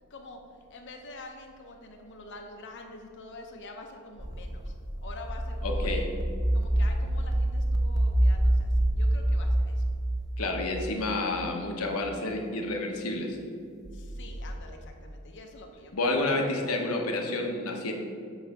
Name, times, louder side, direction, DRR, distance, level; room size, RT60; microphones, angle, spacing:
voice 1, 0.7-4.7 5.0-6.1 6.5-9.9 13.9-15.9, left 2 dB, 55° left, 3 dB, 0.8 m, -46 dB
sound 1, 4.2-11.7 13.8-14.6, right 1 dB, 20° right, 0.5 m, -27 dB
voice 2, 5.6-6.1 10.4-13.4 15.9-17.9, left 2 dB, 85° left, 2 dB, 1.0 m, -29 dB
8.1 x 3.2 x 5.9 m, 2.3 s
head